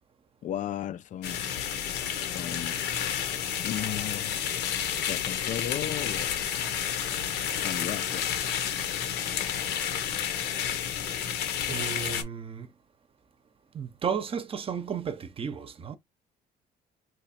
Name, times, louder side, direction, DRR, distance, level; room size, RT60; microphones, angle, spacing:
voice 1, 0.4-1.5 2.3-2.8 3.6-4.4 5.1-6.4 7.6-8.3, left 10 dB, 50° left, 0.5 m, -35 dB
sound 1, 1.2-12.2, left 9 dB, 75° left, 0.9 m, -30 dB
voice 2, 11.7-12.7 13.7-16.0, right 7 dB, 35° right, 0.7 m, -33 dB
2.9 x 2.4 x 4.2 m
cardioid pair, 110°, 17 cm